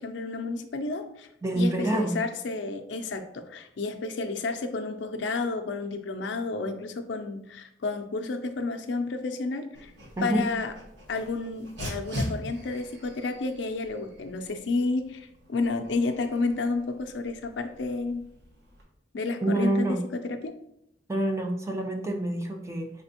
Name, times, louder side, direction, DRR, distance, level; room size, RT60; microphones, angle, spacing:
voice 1, 0.0-1.3 1.6-9.9 10.2-10.7 11.1-18.2 19.1-20.5, left 3 dB, 85° left, 6 dB, 0.4 m, -31 dB
voice 2, 1.4-2.2 10.2-10.5 19.4-20.0 21.1-22.9, right 1 dB, 15° right, 3 dB, 0.4 m, -27 dB
Dog, 9.7-18.8, equal, 75° right, 1.1 m, -41 dB
5.0 x 3.3 x 2.8 m, 0.78 s
head